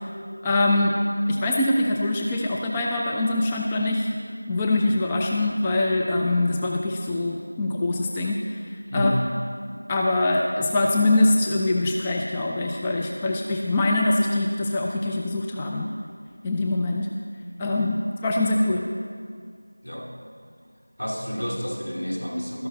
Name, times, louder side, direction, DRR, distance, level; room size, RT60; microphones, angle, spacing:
voice 1, 0.4-0.9 1.3-4.1 4.5-8.4 8.9-9.1 9.9-15.9 16.4-17.1 17.6-18.8, left 2 dB, 10° left, -1 dB, 0.3 m, -23 dB
voice 2, 8.9-9.4 19.8-20.1 21.0-22.7, equal, 85° left, -1 dB, 2.6 m, -29 dB
12.5 x 11.5 x 4.0 m, 2.1 s
figure-of-eight pair, 175°, 0 cm